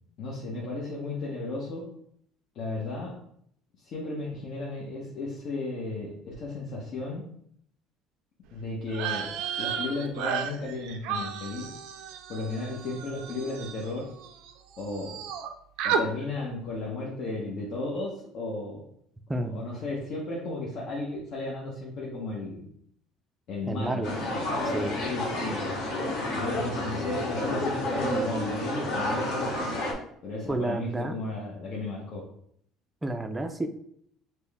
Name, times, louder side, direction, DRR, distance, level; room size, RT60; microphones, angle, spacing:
voice 1, 0.2-1.9 2.5-3.1 3.8-7.3 8.5-9.3 9.6-11.7 12.3-14.1 14.8-15.2 15.8-18.9 19.5-22.7 23.5-24.7 25.0-25.7 26.3-29.6 30.2-32.2, left 2 dB, 55° left, -3 dB, 0.8 m, -34 dB
sound 1, 8.9-14.5 14.8-15.5 15.8-16.0, right 7 dB, 80° right, 0.4 m, -33 dB
voice 2, 23.6-24.1 24.7-25.0 30.5-31.2 33.0-33.7, right 2 dB, 10° right, 7 dB, 0.4 m, -30 dB
sound 2, 24.0-29.9, left 1 dB, 70° left, 1.1 m, -30 dB
4.3 x 2.1 x 3.4 m, 0.69 s
cardioid pair, 110°, 0 cm